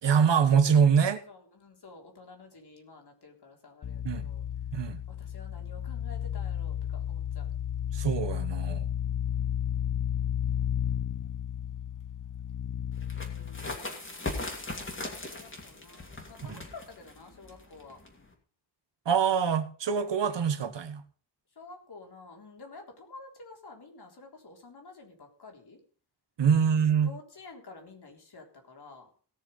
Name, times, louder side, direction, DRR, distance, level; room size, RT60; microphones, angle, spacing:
voice 1, 0.0-1.2 4.0-4.3 4.7-5.0 7.9-8.9 16.5-16.6 19.0-21.0 26.4-27.1, right 7 dB, 85° right, 10 dB, 1.5 m, -24 dB
voice 2, 1.3-4.4 5.1-7.5 9.2-9.9 13.2-18.0 21.6-25.8 26.6-29.1, left 3 dB, 65° left, 1 dB, 3.7 m, -51 dB
sound 1, 3.8-13.8, left 10 dB, 50° left, 0.6 m, -33 dB
sound 2, 13.0-18.3, left 2 dB, 30° left, 2.8 m, -39 dB
18.0 x 6.6 x 5.5 m, 0.42 s
wide cardioid pair, 175°, 42 cm